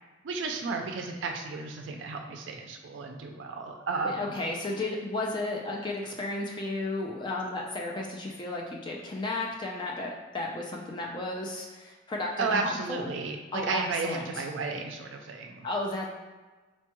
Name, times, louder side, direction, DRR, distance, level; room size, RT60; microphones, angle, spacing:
voice 1, 0.2-4.3 12.4-15.7, right 4 dB, 75° right, 4 dB, 0.4 m, -33 dB
voice 2, 4.0-13.1 13.5-14.4 15.6-16.1, left 2 dB, 25° left, -1 dB, 0.3 m, -33 dB
4.2 x 2.2 x 2.9 m, 1.3 s
head